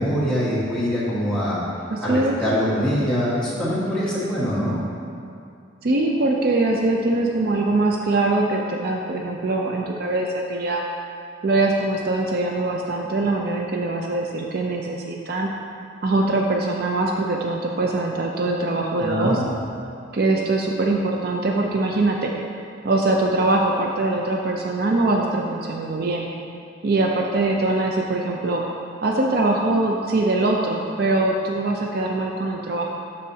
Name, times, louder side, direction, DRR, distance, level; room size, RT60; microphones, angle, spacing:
voice 1, 0.0-1.6 2.0-4.8 19.0-19.4, equal, 5° left, -10 dB, 1.5 m, -23 dB
voice 2, 1.9-2.4 5.8-10.8 11.4-15.5 16.0-19.4 20.1-22.3 22.8-26.3 26.8-28.6 29.0-32.9, right 2 dB, 50° right, 0 dB, 0.5 m, -22 dB
11.5 x 4.2 x 2.8 m, 2.5 s
head